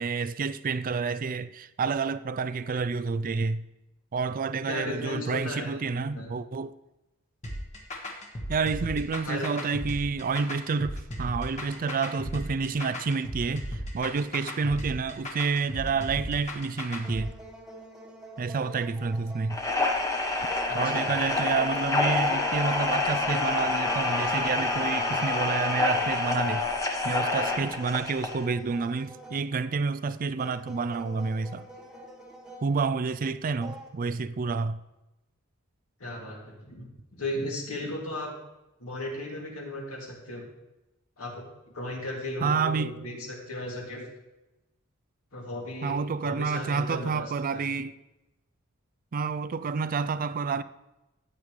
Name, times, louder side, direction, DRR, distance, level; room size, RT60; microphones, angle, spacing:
voice 1, 0.0-3.6 4.1-6.7 8.5-17.3 18.4-19.6 20.7-26.7 27.0-31.7 32.6-34.8 42.4-43.1 45.8-47.9 49.1-50.6, right 4 dB, 40° right, 0.4 m, -29 dB
voice 2, 4.7-6.3 9.3-9.5 20.7-21.1 36.0-38.3 38.8-40.5 41.2-41.4 41.7-44.0 45.3-45.9 46.2-47.3 47.5-47.7, left 1 dB, 70° left, 2.6 m, -36 dB
sound 1, 7.4-17.2, equal, 35° left, 1.5 m, -36 dB
sound 2, 15.8-16.5 17.0-20.0 20.5-23.4 23.8-26.5 27.1-29.9 30.4-33.0 33.6-33.9, right 1 dB, 5° right, 1.4 m, -47 dB
sound 3, 19.5-28.4, left 3 dB, 15° left, 1.1 m, -27 dB
14.0 x 8.8 x 3.2 m
head